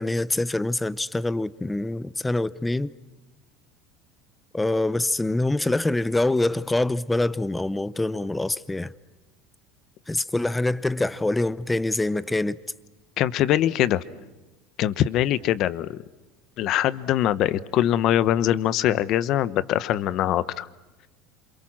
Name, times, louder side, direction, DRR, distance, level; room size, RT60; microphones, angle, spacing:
voice 1, 0.0-2.9 4.5-8.9 10.1-12.5, left 2 dB, 10° left, 0.8 m, -25 dB
voice 2, 13.2-14.0 14.8-16.0 16.6-20.7, left 12 dB, 50° left, 1.1 m, -23 dB
28.5 x 27.5 x 6.1 m
supercardioid pair, 135°, 0 cm